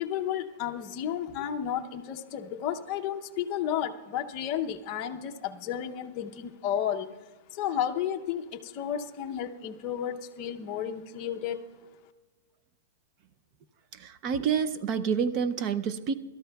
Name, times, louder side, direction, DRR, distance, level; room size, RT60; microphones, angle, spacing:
voice 1, 0.0-7.1 7.5-11.6, left 9 dB, 25° left, 4 dB, 0.7 m, -32 dB
voice 2, 13.9-16.1, right 7 dB, 25° right, 12 dB, 0.5 m, -28 dB
27.0 x 13.0 x 2.3 m, 1.3 s
supercardioid pair, 180°, 0 cm